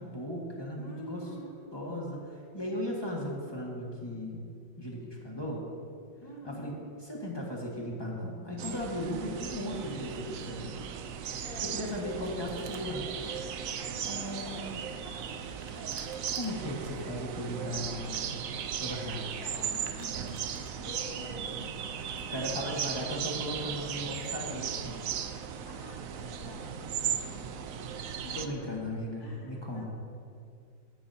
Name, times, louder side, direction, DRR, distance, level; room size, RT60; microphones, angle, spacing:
voice 1, 0.0-1.3 1.7-4.4 4.8-5.6 6.4-6.7 7.1-10.9 11.6-13.0 14.0-14.8 16.3-18.2 18.8-19.3 22.3-25.0 28.3-29.9, equal, 15° left, -3 dB, 1.6 m, -37 dB
voice 2, 0.8-1.7 6.2-6.9 11.4-12.4 12.7-13.4 13.8-14.7 15.0-15.7 17.0-18.3 18.6-18.8 19.2-23.3 25.6-27.7 28.2-28.5 29.2-29.9, left 2 dB, 70° left, -1 dB, 2.4 m, -48 dB
sound 1, 8.6-28.5, right 8 dB, 80° right, 0.7 m, -37 dB
Domestic sounds home sounds, 11.4-12.8 15.4-16.5 19.1-20.7, right 4 dB, 45° right, 0.9 m, -54 dB
17.0 x 10.0 x 2.9 m, 2.4 s
omnidirectional pair, 2.1 m